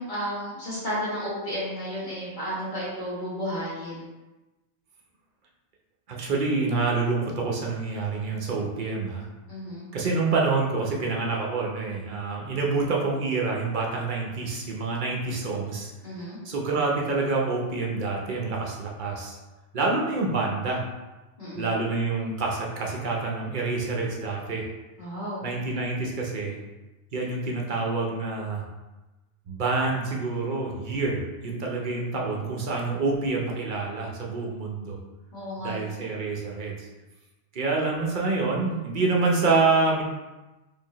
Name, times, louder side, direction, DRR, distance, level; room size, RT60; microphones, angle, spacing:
voice 1, 0.0-4.0 9.5-9.8 16.0-16.4 21.4-21.7 25.0-25.4 35.3-36.0, equal, 45° left, -9 dB, 1.5 m, -33 dB
voice 2, 6.1-9.3 9.9-15.9 16.4-19.4 19.7-20.8 21.5-24.6 25.4-26.6 27.1-28.6 29.5-35.0 35.6-36.9 37.5-40.0, right 3 dB, 50° right, -2 dB, 0.7 m, -27 dB
4.5 x 2.7 x 2.9 m, 1.1 s
omnidirectional pair, 1.2 m